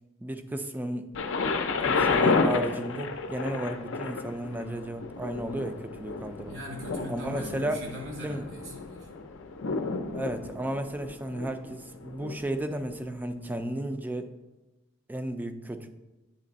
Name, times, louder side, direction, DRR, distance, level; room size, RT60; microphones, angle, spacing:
voice 1, 0.2-1.1 1.8-6.6 7.1-7.8 8.2-8.4 10.1-14.3 15.1-15.9, right 1 dB, 10° right, 8 dB, 0.3 m, -34 dB
Thunder, 1.1-13.0 13.8-13.9, left 4 dB, 65° left, 0.5 m, -31 dB
voice 2, 6.5-9.1, equal, 75° right, -1 dB, 2.1 m, -40 dB
9.0 x 3.3 x 3.9 m, 1.1 s
head